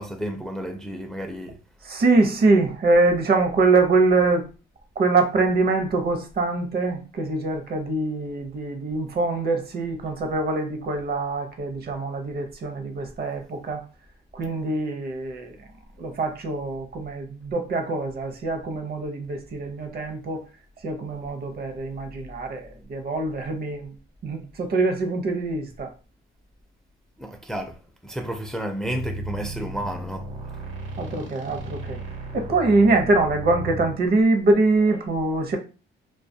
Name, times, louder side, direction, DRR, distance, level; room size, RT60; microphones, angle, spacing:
voice 1, 0.0-1.6 27.2-27.8 28.0-30.3, right 1 dB, 5° left, 0.4 m, -31 dB
voice 2, 1.8-4.4 5.0-13.8 14.3-15.6 16.0-20.4 20.8-24.0 24.2-25.9 31.0-32.0 32.3-35.6, right 3 dB, 50° right, 0.7 m, -23 dB
sound 1, 28.8-33.9, right 1 dB, 80° right, 1.1 m, -35 dB
2.3 x 2.3 x 2.6 m
cardioid pair, 90°, 20 cm